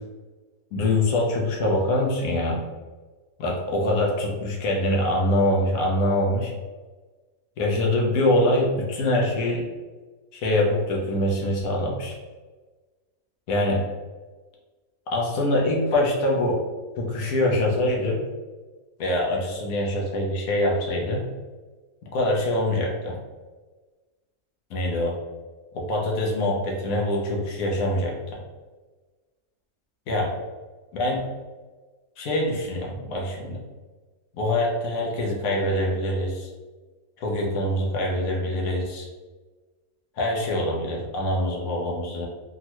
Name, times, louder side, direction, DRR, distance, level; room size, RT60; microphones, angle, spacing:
voice 1, 0.7-2.6 3.4-6.5 7.6-9.6 10.3-12.2 13.5-13.8 15.1-16.6 17.0-18.2 19.0-21.3 22.1-23.2 24.7-25.2 25.7-28.2 30.1-30.3 30.9-31.2 32.2-33.6 34.4-36.5 37.2-39.1 40.2-42.3, left 1 dB, 70° left, -1 dB, 1.1 m, -24 dB
3.6 x 2.1 x 2.9 m, 1.3 s
omnidirectional pair, 1.6 m